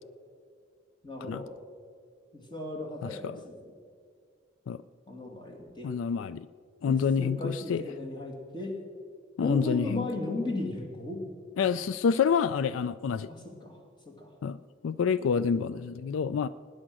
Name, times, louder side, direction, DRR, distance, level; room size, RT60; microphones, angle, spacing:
voice 1, 1.0-1.5 2.3-3.7 5.1-5.9 6.8-8.8 9.4-11.2 13.3-13.8 14.1-14.3, left 2 dB, 25° left, 1 dB, 2.3 m, -36 dB
voice 2, 3.0-3.4 4.7-4.8 5.8-6.5 6.8-7.8 9.4-10.1 11.6-13.3 14.4-14.6 14.8-16.5, left 6 dB, 85° left, 16 dB, 0.4 m, -28 dB
18.0 x 10.0 x 6.2 m, 2.1 s
head